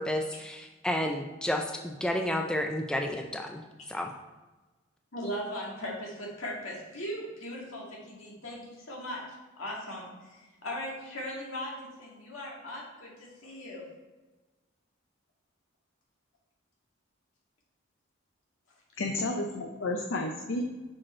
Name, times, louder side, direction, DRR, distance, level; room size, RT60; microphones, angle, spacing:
voice 1, 0.0-3.6 3.9-4.1, left 1 dB, 5° left, 3 dB, 0.3 m, -31 dB
voice 2, 5.1-9.2 9.6-13.9, equal, 85° left, -3 dB, 2.1 m, -38 dB
voice 3, 19.0-20.7, left 2 dB, 70° left, 2 dB, 0.6 m, -31 dB
5.8 x 5.1 x 4.4 m, 1.2 s
head